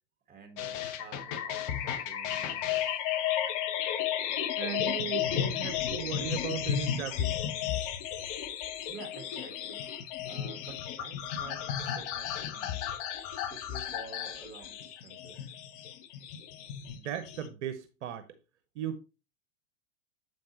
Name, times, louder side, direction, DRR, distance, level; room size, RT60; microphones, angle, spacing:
voice 1, 0.3-3.1 8.9-9.8 10.2-12.9 13.5-15.5, right 5 dB, 25° right, 1.7 m, -50 dB
sound 1, 0.6-17.5, left 10 dB, 45° left, 1.1 m, -33 dB
voice 2, 4.6-7.3 16.9-18.3 18.8-19.0, right 9 dB, 60° right, 0.9 m, -37 dB
7.8 x 5.3 x 2.9 m
hypercardioid pair, 100°, 39 cm